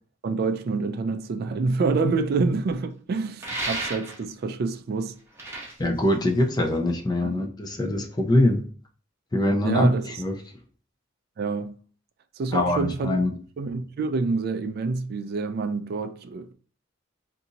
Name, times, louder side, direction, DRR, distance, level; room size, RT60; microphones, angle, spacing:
voice 1, 0.2-5.1 7.2-7.5 9.6-10.2 11.4-11.8 12.4-13.2 13.6-16.5, right 4 dB, 50° right, 0.3 m, -27 dB
sound 1, 3.4-4.4 5.2-6.9, right 2 dB, 15° right, 0.9 m, -33 dB
voice 2, 5.8-8.6 9.3-9.9 10.2-10.3 12.5-13.3, left 1 dB, 20° left, 0.5 m, -23 dB
4.0 x 2.6 x 2.8 m
head